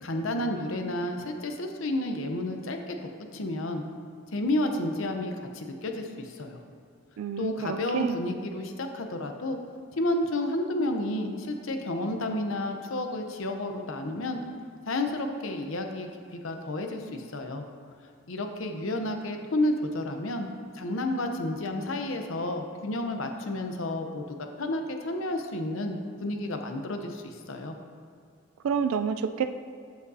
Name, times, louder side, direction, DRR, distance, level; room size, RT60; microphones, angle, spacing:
voice 1, 0.0-3.8 4.3-6.6 7.4-9.6 9.9-14.4 14.9-17.6 18.3-20.5 20.7-24.2 24.6-27.7, left 1 dB, 75° left, 5 dB, 0.7 m, -31 dB
voice 2, 7.2-8.2 28.6-29.6, right 7 dB, 85° right, 9 dB, 0.3 m, -29 dB
14.0 x 5.1 x 2.7 m, 2.4 s
head